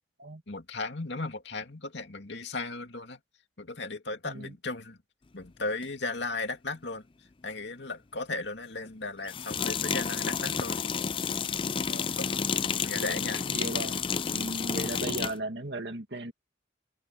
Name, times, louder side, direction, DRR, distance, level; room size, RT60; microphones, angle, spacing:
voice 1, 0.5-3.2 3.6-5.0 5.3-7.0 7.4-10.8 12.2-12.3 12.8-13.4, left 3 dB, 65° left, 2.5 m, -36 dB
sound 1, 5.8-5.9 9.3-15.4, left 6 dB, 25° left, 0.4 m, -30 dB
voice 2, 13.5-14.0 14.3-16.3, right 2 dB, 60° right, 2.4 m, -36 dB
head